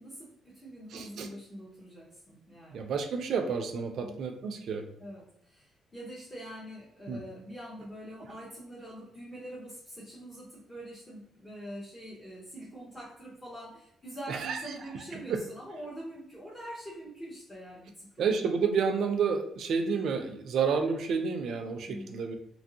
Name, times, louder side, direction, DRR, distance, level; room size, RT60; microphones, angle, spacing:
voice 1, 0.0-2.8 4.0-4.2 5.0-18.3 21.8-22.3, right 1 dB, 20° left, -7 dB, 0.9 m, -44 dB
voice 2, 0.9-1.3 2.7-4.8 7.1-7.2 14.3-14.6 15.3-15.4 18.2-22.4, right 5 dB, 70° right, 5 dB, 0.4 m, -30 dB
2.9 x 2.6 x 2.7 m, 0.77 s
cardioid pair, 90°, 0 cm